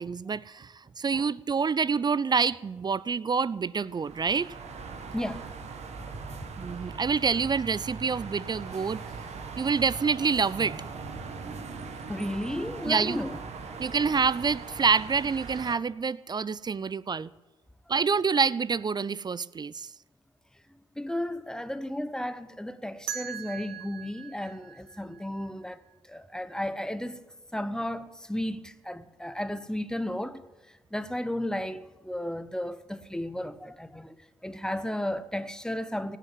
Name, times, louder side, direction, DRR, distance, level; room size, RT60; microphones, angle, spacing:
voice 1, 0.0-4.5 6.6-9.0 9.6-10.8 12.9-13.2 13.8-17.3 17.9-19.9, right 5 dB, 35° right, 0.5 m, -27 dB
sound 1, 3.9-15.7, right 4 dB, 60° right, 1.6 m, -40 dB
voice 2, 5.1-5.5 6.3-6.4 6.7-6.8 12.1-13.4 13.7-13.8 21.0-25.8 26.1-34.1 34.4-36.2, left 1 dB, 5° left, 1.1 m, -34 dB
sound 2, 23.1-25.9, right 11 dB, 90° right, 0.9 m, -41 dB
17.0 x 6.5 x 9.2 m
hypercardioid pair, 40°, 13 cm